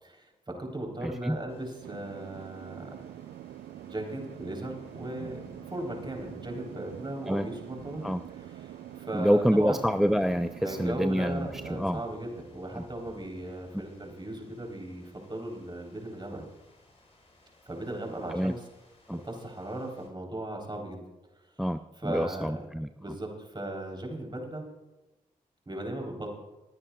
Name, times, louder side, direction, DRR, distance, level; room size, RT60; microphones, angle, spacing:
voice 1, 0.0-3.1 3.8-5.4 5.7-8.1 8.6-9.8 10.6-16.5 17.7-18.6 19.1-21.0 22.0-22.7 23.0-24.6 25.7-26.4, right 1 dB, 30° right, 1 dB, 3.6 m, -37 dB
voice 2, 1.0-1.4 7.3-7.5 8.0-8.2 9.1-12.0 18.3-18.5 19.1-19.2 21.6-22.9, equal, ahead, 11 dB, 0.4 m, -27 dB
sound 1, 1.5-20.1, left 1 dB, 40° left, 3.8 m, -55 dB
sound 2, 1.8-11.9, right 12 dB, 80° right, 0.4 m, -45 dB
27.5 x 9.7 x 2.3 m, 1.0 s
supercardioid pair, 40°, 16 cm